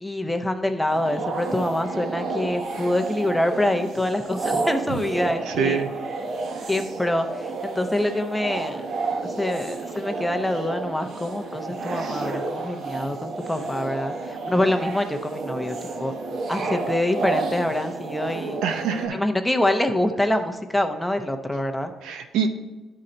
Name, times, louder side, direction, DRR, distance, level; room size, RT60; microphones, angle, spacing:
voice 1, 0.0-5.8 6.7-8.8 9.2-16.1 16.5-18.6 19.1-21.9, left 1 dB, 5° left, 6 dB, 0.7 m, -25 dB
sound 1, 0.9-19.1, right 3 dB, 60° right, 0.9 m, -31 dB
voice 2, 5.5-5.9 18.6-19.2 22.0-22.5, right 7 dB, 90° right, 6 dB, 0.7 m, -25 dB
11.0 x 3.9 x 4.3 m, 1.2 s
cardioid pair, 90°, 0 cm